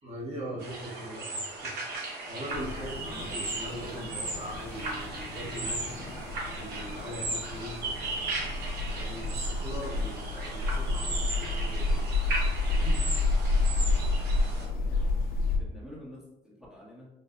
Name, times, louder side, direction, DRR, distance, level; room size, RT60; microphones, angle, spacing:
voice 1, 0.0-6.0 6.5-8.2 8.9-12.0 12.6-13.0, equal, 40° right, -7 dB, 1.2 m, -41 dB
sound 1, 0.6-14.6, right 2 dB, 70° right, 0.9 m, -37 dB
sound 2, 2.5-15.6, left 3 dB, 60° left, 0.7 m, -30 dB
voice 2, 14.5-15.0 15.5-17.1, equal, 5° right, -4 dB, 1.1 m, -49 dB
3.8 x 2.5 x 2.2 m, 0.91 s
cardioid pair, 110°, 17 cm